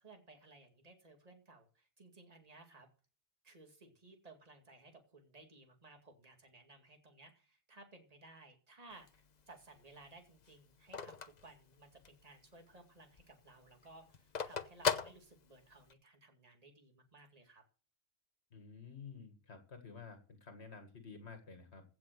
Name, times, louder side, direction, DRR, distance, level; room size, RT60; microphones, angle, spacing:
voice 1, 0.0-2.9 3.4-17.6, right 2 dB, 35° right, 4 dB, 2.4 m, -59 dB
Telephone, 8.9-12.3 12.7-12.8 13.0-15.9, left 6 dB, 45° left, 0.8 m, -39 dB
voice 2, 18.5-21.8, left 5 dB, 85° left, 6 dB, 2.1 m, -52 dB
15.5 x 6.0 x 6.6 m, 0.37 s
omnidirectional pair, 1.1 m